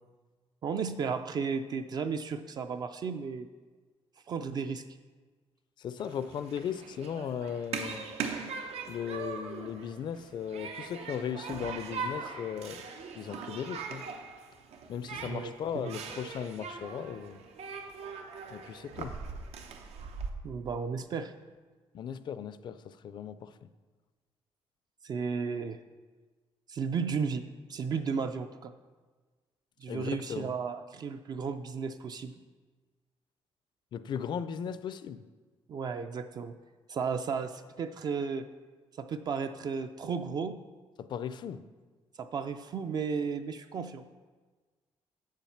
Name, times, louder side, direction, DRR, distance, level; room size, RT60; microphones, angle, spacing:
voice 1, 0.6-3.5 4.3-4.8 15.3-15.5 15.8-16.0 20.4-21.3 25.0-25.8 26.7-27.4 27.7-28.7 29.8-32.3 35.7-36.5 36.9-38.5 39.0-40.6 42.2-44.0, right 5 dB, 40° right, 8 dB, 0.3 m, -34 dB
voice 2, 5.8-8.0 8.9-12.8 13.1-14.1 14.9-17.4 18.5-19.1 21.9-23.5 29.9-30.5 33.9-35.2 41.0-41.6, left 8 dB, 45° left, 13 dB, 0.4 m, -37 dB
Human group actions, 6.0-20.3, right 5 dB, 85° right, 0.8 m, -41 dB
7.7 x 7.3 x 5.7 m, 1.4 s
cardioid pair, 180°, 10 cm